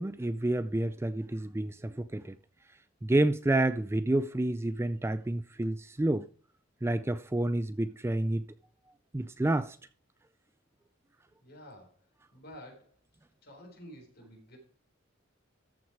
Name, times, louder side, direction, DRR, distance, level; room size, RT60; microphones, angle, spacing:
voice 1, 0.0-2.4 3.0-6.3 6.8-8.5 9.1-9.8, right 1 dB, 10° right, 0.4 m, -29 dB
voice 2, 11.4-12.0 12.3-13.0 13.4-14.6, equal, 50° left, 4.3 m, -50 dB
14.0 x 6.0 x 4.8 m
head